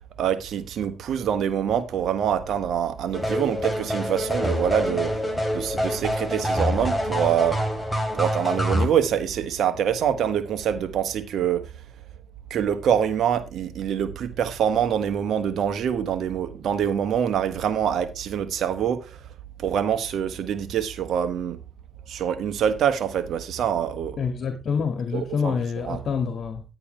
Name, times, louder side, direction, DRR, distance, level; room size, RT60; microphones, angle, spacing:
voice 1, 0.2-5.1 5.5-7.6 8.1-11.7 12.5-19.2 19.6-21.6 22.1-24.2 25.1-25.5 25.8-26.0, right 9 dB, 75° right, 1.4 m, -25 dB
sound 1, 3.1-8.9, equal, 5° left, 3.1 m, -26 dB
voice 2, 24.2-26.6, left 6 dB, 60° left, 2.0 m, -27 dB
10.5 x 9.7 x 3.3 m
supercardioid pair, 65°, 0 cm